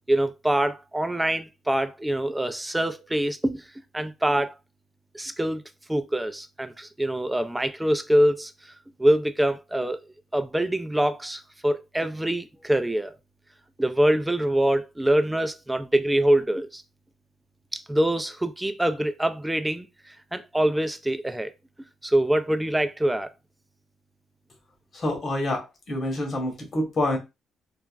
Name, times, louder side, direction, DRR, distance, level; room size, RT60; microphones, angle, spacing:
voice 1, 0.1-3.6 3.9-4.5 5.1-5.6 5.9-8.7 9.0-10.1 10.3-13.1 13.8-16.8 17.7-21.5 22.0-23.3, right 1 dB, 10° right, 0.3 m, -24 dB
voice 2, 24.9-27.2, left 1 dB, 45° left, 1.2 m, -27 dB
3.4 x 2.1 x 2.3 m
cardioid pair, 90°, 0 cm